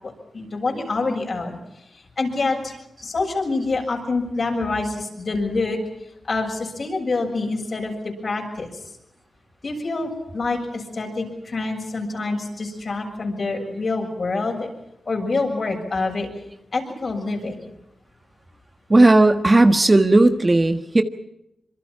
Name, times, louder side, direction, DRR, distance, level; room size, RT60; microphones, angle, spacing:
voice 1, 0.0-1.6 2.2-2.7 3.0-5.8 6.2-8.7 9.6-14.7 15.1-16.3 16.7-17.6, left 3 dB, 50° left, 2 dB, 7.2 m, -26 dB
voice 2, 18.9-21.0, right 2 dB, 25° right, 8 dB, 1.4 m, -15 dB
26.0 x 23.5 x 5.8 m, 0.85 s
cardioid pair, 65°, 0 cm